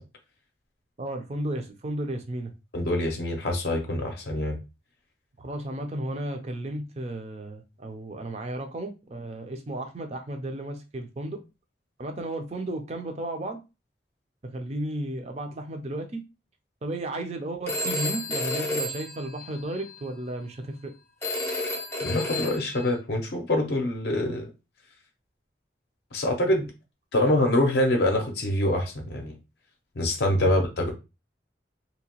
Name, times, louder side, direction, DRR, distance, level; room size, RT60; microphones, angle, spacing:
voice 1, 1.0-2.5 5.4-11.4 12.0-13.6 14.4-16.2 16.8-20.9 30.4-30.5, right 1 dB, 35° right, 0.5 m, -34 dB
voice 2, 2.7-4.6 22.0-24.5 26.1-26.6 27.1-29.4 30.0-30.9, left 1 dB, 60° left, 0.5 m, -25 dB
Telephone, 17.7-20.0 21.2-22.9, left 2 dB, 15° left, 0.5 m, -31 dB
2.8 x 2.1 x 2.9 m
head